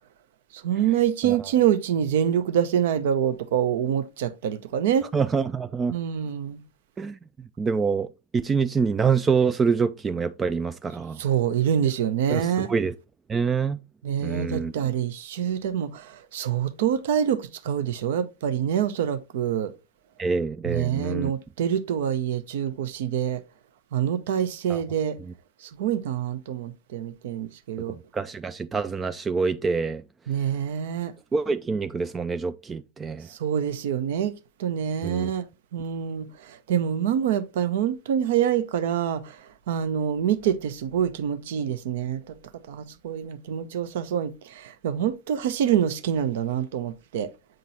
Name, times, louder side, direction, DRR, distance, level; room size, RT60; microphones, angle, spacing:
voice 1, 0.6-5.1 5.9-6.6 11.2-12.7 14.0-19.7 20.6-23.4 23.9-25.2 25.8-28.0 30.3-31.1 33.4-34.3 34.6-35.5 35.7-39.2 39.7-42.2 42.7-47.3, right 9 dB, 55° right, 0.7 m, -26 dB
voice 2, 5.1-6.0 7.0-7.2 7.6-8.1 8.3-11.2 12.3-12.9 13.3-13.8 14.2-14.7 20.2-21.3 24.7-24.8 28.1-30.0 31.3-33.3 35.0-35.3, right 5 dB, 15° right, 0.3 m, -26 dB
7.7 x 3.9 x 4.1 m
figure-of-eight pair, 90°, 0 cm